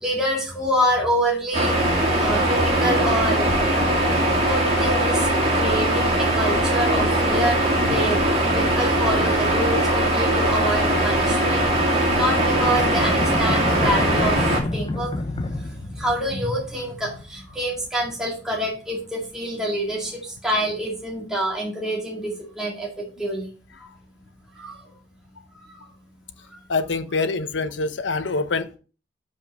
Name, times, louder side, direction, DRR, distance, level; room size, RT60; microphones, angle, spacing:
voice 1, 0.0-1.7 2.2-3.5 4.5-5.3 5.5-11.7 12.2-14.4 14.7-22.9 23.2-23.5 24.6-24.8, equal, 5° right, -4 dB, 2.1 m, -26 dB
sound 1, 1.5-14.6, right 1 dB, 35° right, 2.8 m, -21 dB
sound 2, 10.9-16.7, left 1 dB, 30° left, 0.6 m, -30 dB
voice 2, 26.7-28.8, left 3 dB, 85° left, 11 dB, 0.8 m, -25 dB
7.1 x 5.4 x 5.3 m, 0.36 s
head